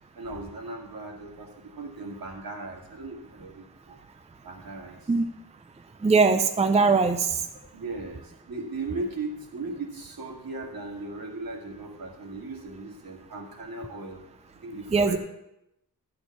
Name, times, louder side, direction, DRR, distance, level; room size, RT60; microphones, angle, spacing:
voice 1, 0.2-4.0 4.4-5.1 7.7-14.2 14.6-15.2, right 2 dB, 65° right, 0 dB, 2.2 m, -37 dB
voice 2, 6.0-7.4 14.9-15.2, right 4 dB, 20° right, 7 dB, 0.5 m, -21 dB
13.0 x 4.5 x 8.2 m, 0.84 s
wide cardioid pair, 170°, 37 cm